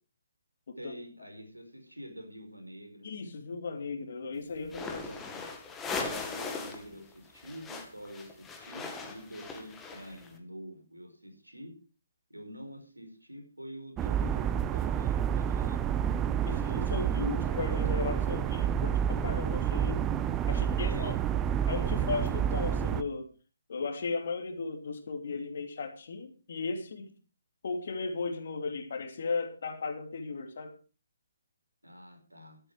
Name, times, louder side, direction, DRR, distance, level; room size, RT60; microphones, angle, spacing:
voice 1, 0.8-3.1 5.0-5.3 6.0-11.7 12.3-15.8 16.9-17.1 20.5-21.2 31.8-32.6, equal, 85° right, 5 dB, 5.0 m, -47 dB
voice 2, 3.0-5.1 5.3-5.4 16.4-20.0 20.5-21.2 21.7-23.3 23.7-27.1 27.6-30.7, left 4 dB, 50° left, 7 dB, 2.7 m, -36 dB
sound 1, 4.6-6.9 7.1-10.3, left 4 dB, 10° left, 2.0 m, -39 dB
sound 2, 14.0-23.0, right 9 dB, 15° right, 0.7 m, -29 dB
13.0 x 12.5 x 4.9 m, 0.36 s
figure-of-eight pair, 140°, 0 cm